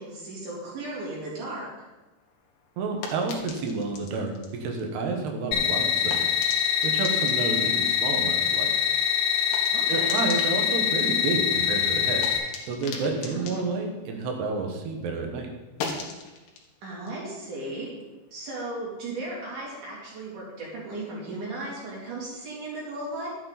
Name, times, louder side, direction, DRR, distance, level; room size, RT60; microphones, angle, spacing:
voice 1, 0.0-1.9 9.7-10.1 13.2-13.7 16.8-17.9 18.3-23.3, right 2 dB, 50° right, -5 dB, 4.4 m, -36 dB
sound 1, 2.2-15.0 15.3-18.5, left 4 dB, 75° left, 3.3 m, -42 dB
voice 2, 2.8-6.4 6.8-8.7 9.9-15.5, right 3 dB, 80° right, 2 dB, 3.4 m, -30 dB
sound 2, 5.5-12.4, left 7 dB, 50° left, 3.2 m, -24 dB
12.5 x 8.8 x 4.1 m, 1.2 s
omnidirectional pair, 4.8 m